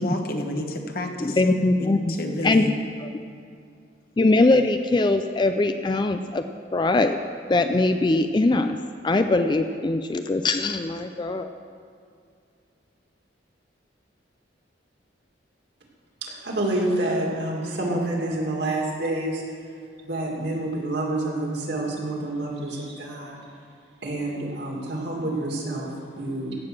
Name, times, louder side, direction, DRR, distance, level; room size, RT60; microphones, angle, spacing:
voice 1, 0.0-1.4 1.8-2.8, left 1 dB, 50° left, 3 dB, 1.2 m, -30 dB
voice 2, 1.2-2.2 2.4-2.6 3.0-3.1 4.2-6.4 6.7-7.2 7.5-8.8 9.0-11.5, left 2 dB, 25° left, 7 dB, 0.3 m, -21 dB
voice 3, 16.2-19.4 20.0-23.4 24.0-26.6, right 1 dB, 60° right, -2 dB, 2.5 m, -28 dB
16.5 x 7.7 x 6.1 m, 2.3 s
head